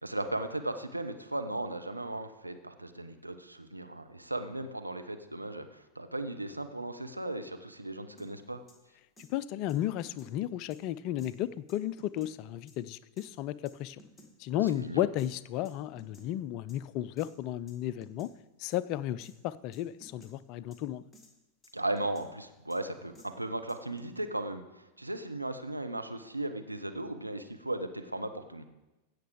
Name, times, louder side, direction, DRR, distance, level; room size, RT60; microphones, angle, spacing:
voice 1, 0.0-8.6 14.7-15.0 21.7-28.6, right 1 dB, 85° right, 7 dB, 0.9 m, -36 dB
sound 1, 8.2-8.3 8.7-8.8 9.2-9.3 9.7-10.3 10.7-10.8 11.2-11.3 11.7-12.3 12.7-12.8 13.2-13.3 13.7-14.3 14.7-14.8 15.2-15.3 15.6-16.3 16.7-16.8 17.2-17.3 17.7-17.8 18.0-18.3 18.7-18.8 19.2-19.3 19.7-20.3 20.7-20.8 21.1-21.3 21.6-22.3 22.7-22.8 23.1-23.3 23.7-24.2, left 1 dB, 10° left, 2.0 m, -55 dB
voice 2, 9.3-14.0 14.4-18.3 18.6-21.0, left 13 dB, 40° left, 18 dB, 0.4 m, -33 dB
16.0 x 6.6 x 4.9 m, 1.0 s
figure-of-eight pair, 90°, 0 cm